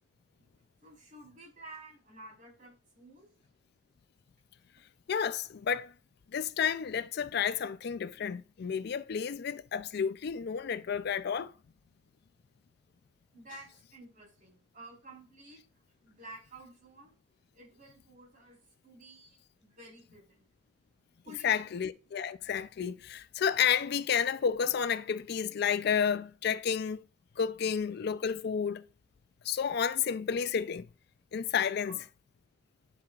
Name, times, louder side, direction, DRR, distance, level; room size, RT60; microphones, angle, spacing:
voice 1, 0.8-3.3 13.3-15.6 16.0-17.2 17.5-20.4 21.2-21.6 31.8-32.0, right 2 dB, 45° right, 4.0 m, -52 dB
voice 2, 5.1-5.9 6.3-11.5 21.3-27.0 27.4-28.8 29.4-30.9 31.3-32.0, left 7 dB, 60° left, 0.4 m, -31 dB
10.5 x 7.6 x 2.4 m
head